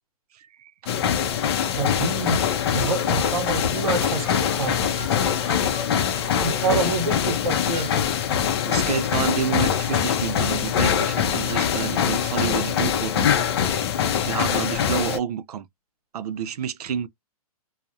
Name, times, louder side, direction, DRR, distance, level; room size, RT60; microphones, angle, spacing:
voice 1, 0.3-0.7 8.7-13.7 14.2-15.7 16.1-17.1, right 8 dB, 85° right, 0.5 m, -29 dB
sound 1, 0.9-15.2, left 8 dB, 45° left, 0.5 m, -23 dB
voice 2, 1.6-2.5 2.7-4.8 5.1-5.2 6.4-7.9, right 4 dB, 65° right, 0.9 m, -27 dB
sound 2, 2.8-7.2 7.7-8.5, right 1 dB, 15° right, 0.8 m, -42 dB
2.3 x 2.0 x 2.7 m
hypercardioid pair, 160°, 19 cm